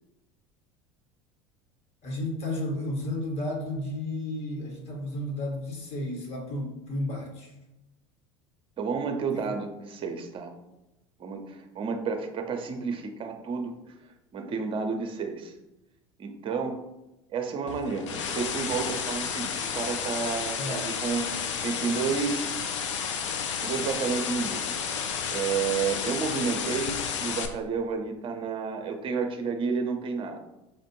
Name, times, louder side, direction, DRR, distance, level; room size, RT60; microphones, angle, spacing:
voice 1, 2.0-7.5 9.3-9.5 20.6-20.9 21.3-21.5, left 1 dB, 40° left, 0 dB, 1.4 m, -33 dB
voice 2, 8.8-10.5 11.2-13.7 14.3-15.5 16.2-16.8 17.3-22.8 23.6-25.0 25.3-30.4, right 5 dB, 35° right, 5 dB, 0.7 m, -31 dB
sound 1, 17.7-27.5, left 7 dB, 70° left, 0.5 m, -31 dB
5.0 x 2.5 x 3.1 m, 0.93 s
figure-of-eight pair, 75°, 16 cm